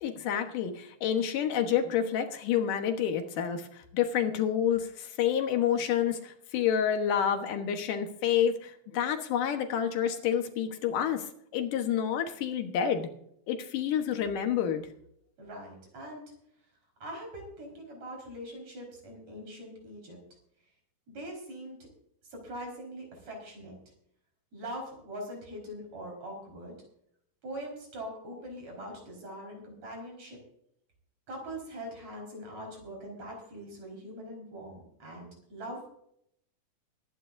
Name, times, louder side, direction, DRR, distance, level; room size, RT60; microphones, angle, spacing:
voice 1, 0.0-11.3 11.5-13.1 13.5-14.8, left 9 dB, 80° left, 6 dB, 2.9 m, -29 dB
voice 2, 15.4-16.2 17.0-20.2 21.1-21.8 22.3-23.8 24.5-26.7 27.4-30.4 31.3-35.9, equal, 55° right, 0 dB, 6.0 m, -42 dB
23.5 x 10.5 x 2.7 m, 0.71 s
omnidirectional pair, 3.7 m